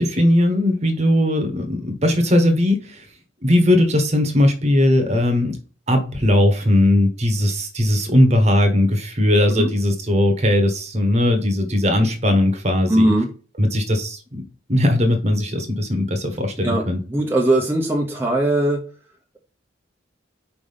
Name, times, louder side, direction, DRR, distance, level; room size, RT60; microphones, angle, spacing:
voice 1, 0.0-3.0 3.4-5.6 5.9-13.1 13.6-14.4 14.7-17.0, left 1 dB, 35° right, 6 dB, 1.2 m, -18 dB
voice 2, 12.9-13.3 16.6-18.8, right 1 dB, 10° right, -1 dB, 0.8 m, -19 dB
5.0 x 3.4 x 5.5 m, 0.37 s
head